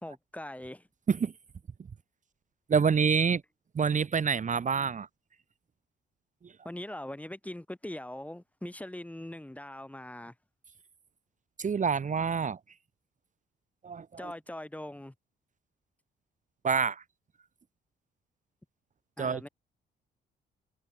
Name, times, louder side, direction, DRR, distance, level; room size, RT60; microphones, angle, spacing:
voice 1, 0.0-0.9 6.6-10.3 14.2-15.1 19.2-19.5, left 1 dB, 5° left, 2.8 m, -41 dB
voice 2, 2.7-3.4 3.7-5.1 6.4-6.5 11.6-12.6 13.8-14.3 16.6-17.0 19.2-19.5, right 6 dB, 40° right, 1.7 m, -27 dB
cardioid pair, 90°, 20 cm